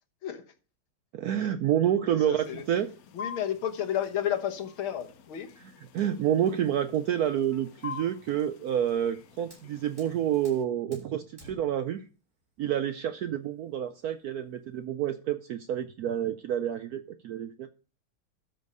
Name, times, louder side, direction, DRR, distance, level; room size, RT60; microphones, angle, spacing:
voice 1, 1.1-2.9 5.6-12.0 12.6-17.7, right 10 dB, 90° right, 0.8 m, -29 dB
voice 2, 2.1-2.6 3.1-5.5, left 10 dB, 85° left, 2.0 m, -32 dB
sound 1, 2.4-10.6, left 6 dB, 60° left, 1.0 m, -47 dB
Fire, 8.9-14.8, equal, 15° right, 6.3 m, -58 dB
13.0 x 4.5 x 5.3 m
omnidirectional pair, 2.2 m